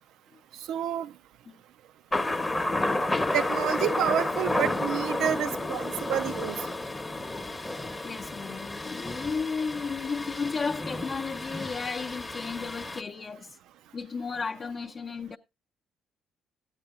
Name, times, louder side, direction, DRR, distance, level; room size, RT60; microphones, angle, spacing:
voice 1, 0.7-1.1 3.3-6.7, right 10 dB, 80° right, 0.5 m, -29 dB
Thunder, 2.1-13.0, left 2 dB, 15° left, 0.8 m, -31 dB
voice 2, 8.0-13.6 13.9-15.4, left 5 dB, 40° left, 0.6 m, -34 dB
13.0 x 8.9 x 3.5 m
cardioid pair, 100°, 0 cm